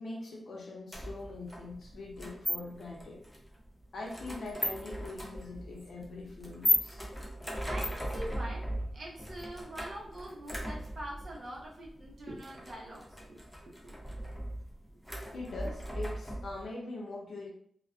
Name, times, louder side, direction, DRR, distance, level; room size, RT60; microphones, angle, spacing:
voice 1, 0.0-3.2 3.9-7.0 15.3-17.5, left 2 dB, 75° left, -2 dB, 0.6 m, -42 dB
sound 1, 0.9-16.7, left 1 dB, 5° left, 0.5 m, -37 dB
voice 2, 7.7-13.4 13.8-14.0, right 1 dB, 55° right, -4 dB, 0.7 m, -44 dB
2.4 x 2.1 x 2.4 m, 0.63 s
wide cardioid pair, 170°, 0 cm